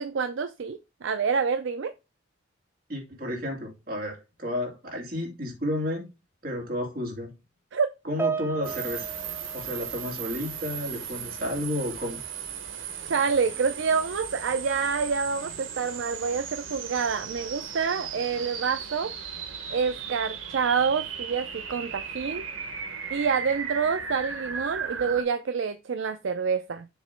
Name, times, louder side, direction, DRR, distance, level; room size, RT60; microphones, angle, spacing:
voice 1, 0.0-1.9 7.7-7.9 13.0-19.1 19.7-22.5 23.1-26.9, right 5 dB, 70° right, 0.4 m, -27 dB
voice 2, 2.9-6.1 6.4-7.3 8.0-9.1 9.5-12.2, left 1 dB, 50° right, 2.4 m, -32 dB
Piano, 8.2-10.8 11.1-11.4 12.2-12.3, right 5 dB, 10° right, 0.4 m, -35 dB
sound 1, 8.6-25.2, right 7 dB, 90° right, 1.2 m, -36 dB
7.1 x 2.9 x 5.7 m
head